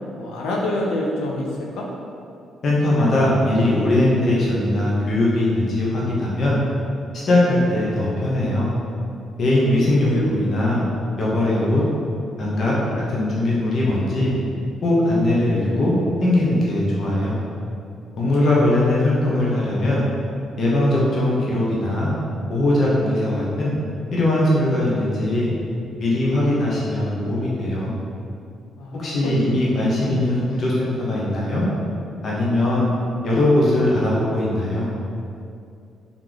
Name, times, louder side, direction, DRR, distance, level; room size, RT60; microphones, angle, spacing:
voice 1, 0.2-1.5 1.7-1.9 9.5-10.8 12.8-13.0 18.4-18.5 28.8-29.5 30.1-30.4, left 1 dB, 90° left, -2 dB, 0.6 m, -28 dB
voice 2, 2.6-6.6 7.3-8.7 9.4-10.8 11.2-11.8 12.4-12.7 13.1-14.3 14.8-15.9 16.2-17.4 18.2-20.0 20.6-22.1 22.5-23.7 24.1-25.5 26.0-27.9 28.9-31.6 32.2-32.9 33.2-34.9, left 1 dB, 55° left, -6 dB, 0.9 m, -20 dB
3.6 x 3.0 x 3.9 m, 2.5 s
cardioid pair, 90°, 0 cm